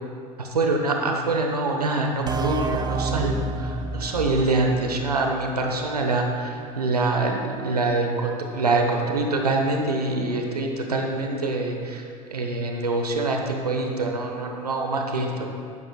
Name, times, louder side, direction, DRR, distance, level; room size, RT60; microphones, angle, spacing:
voice 1, 0.5-3.4 3.9-6.5 6.8-7.3 7.6-11.8 12.3-13.4 13.6-15.5, right 2 dB, 90° right, 2 dB, 0.9 m, -24 dB
sound 1, 2.3-5.8, right 3 dB, 20° right, 0.7 m, -30 dB
13.5 x 10.0 x 2.3 m, 2.4 s
hypercardioid pair, 75°, 19 cm